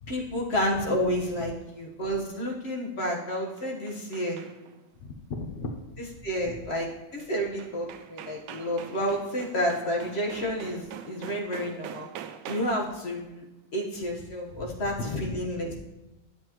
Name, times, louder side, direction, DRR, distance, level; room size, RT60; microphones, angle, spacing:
voice 1, 0.1-4.4 6.2-12.1 12.5-13.4 13.7-15.8, equal, 40° left, -1 dB, 1.4 m, -30 dB
sound 1, 3.3-4.8 7.2-7.3 7.6-12.9, right 9 dB, 80° right, 1.2 m, -44 dB
voice 2, 5.0-6.6 14.5-15.5, left 2 dB, 70° left, 4 dB, 0.5 m, -38 dB
10.5 x 7.5 x 3.0 m, 0.99 s
omnidirectional pair, 2.0 m